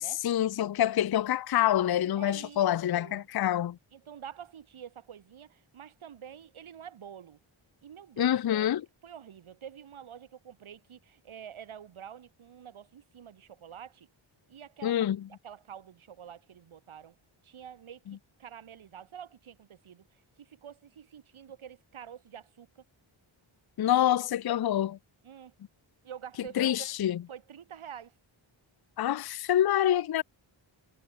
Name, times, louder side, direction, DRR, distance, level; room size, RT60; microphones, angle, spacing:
voice 1, 0.0-3.8 8.2-8.8 14.8-15.2 23.8-25.0 26.6-27.2 29.0-30.2, left 11 dB, 50° left, 0.5 m, -26 dB
voice 2, 2.2-3.3 3.9-7.4 7.8-8.7 9.0-14.1 14.5-15.0 15.4-17.2 17.4-18.0 18.4-22.8 25.2-25.5 26.0-26.9 27.3-28.1, right 8 dB, 80° right, 1.4 m, -47 dB
wide cardioid pair, 135°, 49 cm